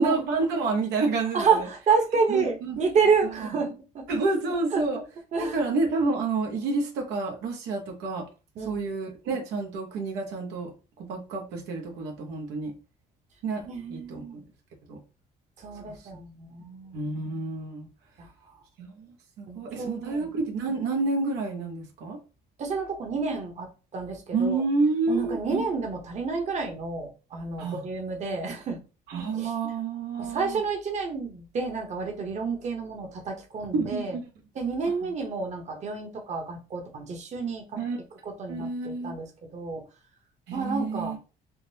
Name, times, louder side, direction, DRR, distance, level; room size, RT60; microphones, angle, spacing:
voice 1, 0.0-1.7 2.3-2.8 4.1-5.0 5.4-8.3 8.6-10.7 11.0-12.7 13.4-14.2 14.9-15.0 15.9-16.0 16.9-17.9 18.8-22.2 24.3-25.6 27.6-27.8 29.1-30.6 33.7-34.3 37.8-38.0 38.5-39.1 40.5-41.2, right 3 dB, 90° right, 0.8 m, -29 dB
voice 2, 1.3-4.0 4.7-4.8 5.3-5.6 8.6-8.9 13.6-14.4 15.6-17.0 18.2-18.3 19.5-20.3 22.6-24.6 25.1-28.8 29.1-29.5 30.2-34.2 34.5-37.8 38.2-39.8 40.5-41.2, right 5 dB, 45° right, 0.8 m, -29 dB
3.6 x 2.0 x 2.7 m
cardioid pair, 110°, 17 cm